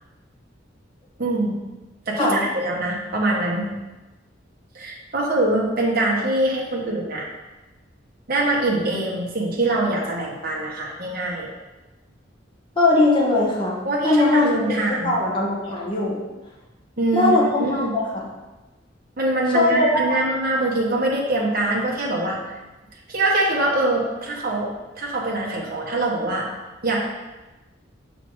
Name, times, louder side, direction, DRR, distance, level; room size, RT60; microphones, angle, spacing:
voice 1, 1.2-1.5 2.1-3.7 4.7-7.2 8.3-11.5 13.8-15.1 17.0-17.9 19.2-22.4 23.1-24.7 25.0-26.5 26.8-27.0, right 2 dB, 50° right, -3 dB, 1.2 m, -23 dB
voice 2, 12.8-13.7 14.0-16.2 17.1-18.2 19.5-20.2, left 2 dB, 25° left, -4 dB, 1.4 m, -20 dB
6.1 x 3.9 x 4.7 m, 1.1 s
head